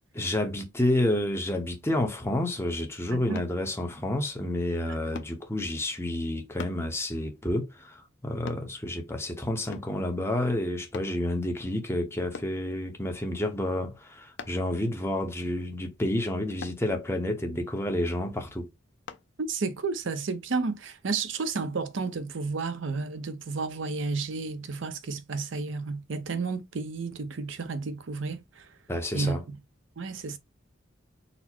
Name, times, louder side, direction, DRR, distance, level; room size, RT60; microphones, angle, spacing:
voice 1, 0.1-18.7 28.9-29.4, left 1 dB, 15° left, 0.8 m, -29 dB
voice 2, 3.1-3.4 19.4-28.7 29.1-29.6 30.0-30.4, right 4 dB, 70° right, 0.6 m, -32 dB
sound 1, 3.3-3.6 5.1-5.4 6.6-6.8 8.5-8.7 9.7-10.0 10.9-11.2 12.3-12.6 14.4-14.7 16.6-16.8 19.1-19.3 19.8-20.0, left 5 dB, 60° left, 0.5 m, -41 dB
4.1 x 2.0 x 4.4 m
head